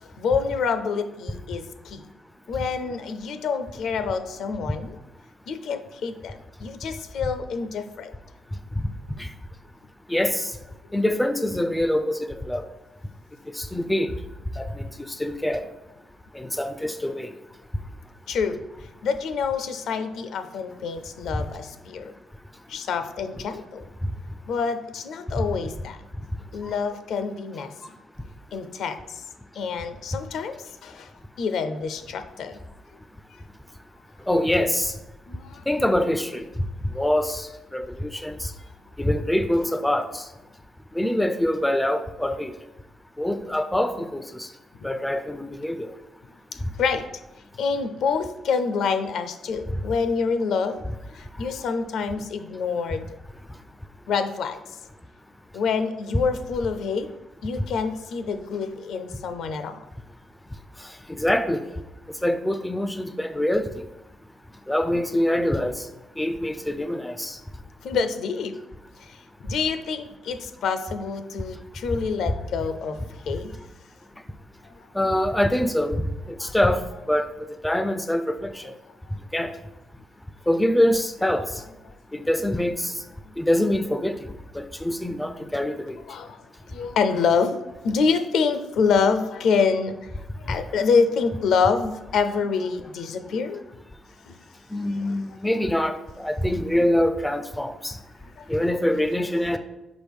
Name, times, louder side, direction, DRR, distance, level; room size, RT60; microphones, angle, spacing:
voice 1, 0.0-2.1 2.5-5.0 5.5-8.1 10.8-10.9 18.3-22.1 22.7-23.9 24.5-26.0 26.5-27.7 28.5-29.2 29.5-31.1 31.4-32.6 35.3-35.6 44.8-44.9 46.8-47.1 47.6-50.9 51.1-53.0 54.1-54.6 55.5-57.1 57.4-59.8 67.8-68.5 69.0-73.5 74.6-74.9 76.3-76.5 81.9-82.0 83.3-83.4 86.1-86.4 86.7-87.6 87.8-93.6 94.2-94.3 94.9-95.2 98.2-98.5, left 5 dB, 70° left, 9 dB, 0.5 m, -27 dB
voice 2, 10.1-10.4 10.9-12.2 12.5-12.6 13.6-14.1 14.6-14.7 15.2-15.6 16.4-17.3 34.3-34.9 35.7-36.4 37.0-37.4 37.7-38.3 39.0-40.1 41.0-42.5 43.2-44.2 44.8-45.9 61.2-61.6 62.2-63.6 64.7-65.7 66.2-67.4 75.0-75.9 76.4-76.8 77.1-77.3 77.6-78.6 79.3-79.5 80.5-81.4 82.1-82.9 83.4-84.1 84.6-86.0 94.7-95.9 96.2-97.9 98.5-99.6, left 1 dB, 5° left, 9 dB, 0.3 m, -24 dB
6.1 x 4.8 x 3.5 m, 0.98 s
cardioid pair, 150°, 0 cm